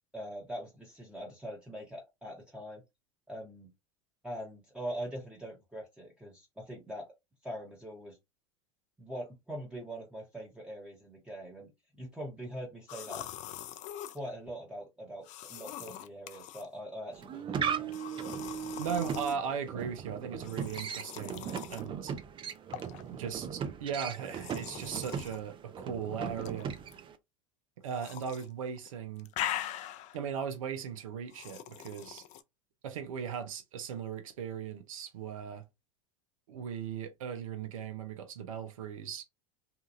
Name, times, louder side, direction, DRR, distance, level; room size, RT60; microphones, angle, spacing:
voice 1, 0.1-2.8 3.3-3.7 4.2-7.1 7.4-8.2 9.0-11.7 12.0-13.2 14.1-18.0, equal, 5° right, 1.0 m, -42 dB
sound 1, 12.9-14.2 15.2-16.7 17.9-19.4 20.4-21.9 22.7-23.0 24.2-25.4 26.3-27.0 27.9-28.5 28.8-30.2 31.3-32.4, left 12 dB, 45° left, 0.4 m, -42 dB
car windshield wipers spray water squeaky, 17.1-27.2, right 7 dB, 30° right, 0.5 m, -38 dB
voice 2, 18.7-22.1 23.1-26.7 27.8-29.3 30.1-32.2 32.8-35.6 36.5-39.2, right 7 dB, 80° right, 0.6 m, -38 dB
2.8 x 2.4 x 2.4 m
hypercardioid pair, 90°, 17 cm